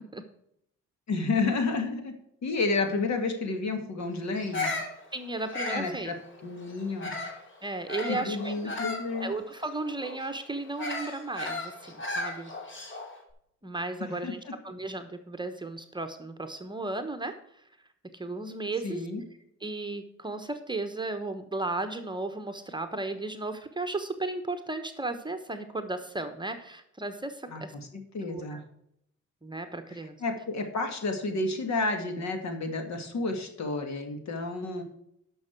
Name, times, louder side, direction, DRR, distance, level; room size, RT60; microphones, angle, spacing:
voice 1, 1.1-2.1 2.4-4.7 5.7-7.1 8.1-9.3 14.0-14.5 18.8-19.2 27.5-28.6 30.2-34.8, left 3 dB, 65° left, 6 dB, 2.1 m, -31 dB
Bird vocalization bird call bird song, 4.3-7.4 7.9-13.2, left 2 dB, 40° left, 2.8 m, -36 dB
voice 2, 5.1-6.1 7.6-8.7 9.2-12.5 13.6-17.3 18.1-19.1 19.6-27.7 28.3-28.6 29.4-30.2, right 2 dB, 15° right, 7 dB, 1.0 m, -35 dB
11.5 x 6.2 x 4.5 m, 0.75 s
cardioid pair, 90°, 30 cm